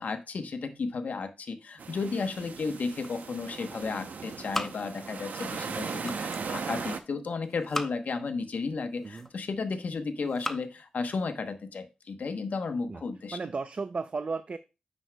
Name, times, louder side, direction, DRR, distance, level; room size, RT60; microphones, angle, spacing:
voice 1, 0.0-13.4, left 4 dB, 70° left, 8 dB, 1.0 m, -33 dB
sound 1, 1.8-7.0, right 5 dB, 80° right, 0.7 m, -38 dB
sound 2, 2.7-3.6 3.9-5.3 5.7-6.5 7.4-8.3 8.8-9.6 10.1-10.7, left 1 dB, 10° left, 0.8 m, -39 dB
voice 2, 5.6-5.9 9.0-9.3 12.9-13.0 13.3-14.6, right 4 dB, 50° right, 11 dB, 0.4 m, -35 dB
9.1 x 6.2 x 2.2 m, 0.28 s
wide cardioid pair, 80°, 3 cm